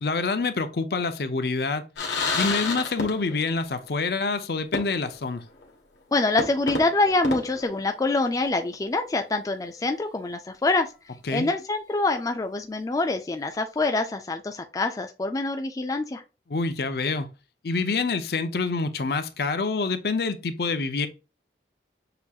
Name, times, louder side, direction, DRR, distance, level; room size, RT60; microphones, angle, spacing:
voice 1, 0.0-1.8 2.4-5.4 11.3-11.5 16.5-17.3 17.6-21.1, left 4 dB, 60° left, 0.6 m, -26 dB
sound 1, 2.0-3.6 3.8-3.9 4.7-5.3 5.6-5.7 6.4-8.4, left 3 dB, 90° left, 1.2 m, -30 dB
voice 2, 6.1-10.9 11.3-16.2, left 2 dB, 20° left, 0.3 m, -25 dB
6.7 x 2.8 x 2.3 m
head